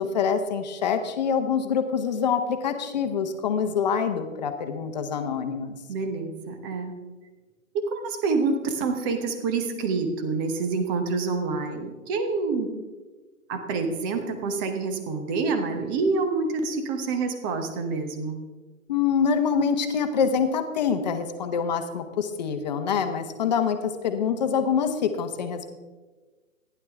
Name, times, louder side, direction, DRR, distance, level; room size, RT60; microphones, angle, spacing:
voice 1, 0.0-5.8 18.9-25.7, left 6 dB, 30° left, 8 dB, 1.1 m, -25 dB
voice 2, 5.9-6.9 7.7-12.7 13.5-18.4, right 4 dB, 15° right, 6 dB, 0.9 m, -27 dB
15.0 x 10.5 x 3.5 m, 1.3 s
figure-of-eight pair, 135°, 42 cm